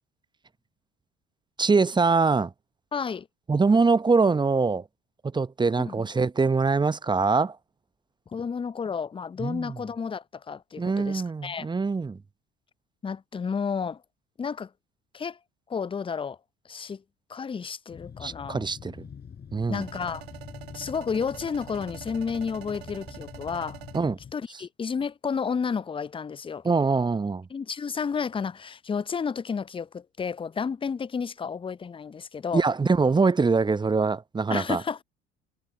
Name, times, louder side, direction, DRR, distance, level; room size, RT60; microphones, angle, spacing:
voice 1, 1.6-2.5 3.5-4.9 5.2-7.6 9.4-9.8 10.8-12.2 18.2-19.0 19.5-19.8 23.9-24.2 26.6-27.5 32.5-34.8, right 4 dB, 15° right, 0.9 m, -23 dB
voice 2, 2.9-3.3 5.8-6.0 8.3-11.7 13.0-14.0 14.4-14.7 15.1-15.4 15.7-16.4 16.6-17.0 17.3-18.6 19.7-20.3 20.7-23.8 24.3-26.7 27.5-32.6 34.5-35.0, left 6 dB, 15° left, 0.7 m, -31 dB
sound 1, 17.9-24.3, left 7 dB, 30° left, 5.2 m, -45 dB
sound 2, 19.7-24.0, right 11 dB, 75° right, 3.5 m, -45 dB
figure-of-eight pair, 60°, 31 cm